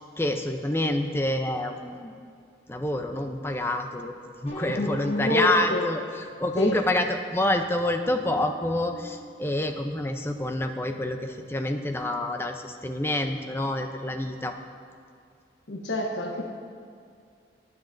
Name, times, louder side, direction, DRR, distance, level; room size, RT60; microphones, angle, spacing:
voice 1, 0.0-2.1 2.7-4.1 4.4-14.5, left 1 dB, 15° left, 5 dB, 0.5 m, -27 dB
sound 1, 4.5-7.1 7.7-10.2, equal, 45° left, 2.4 m, -43 dB
voice 2, 4.8-5.9 6.6-6.8 15.7-16.4, left 1 dB, 80° left, 1 dB, 1.0 m, -27 dB
19.5 x 9.6 x 2.6 m, 2.3 s
head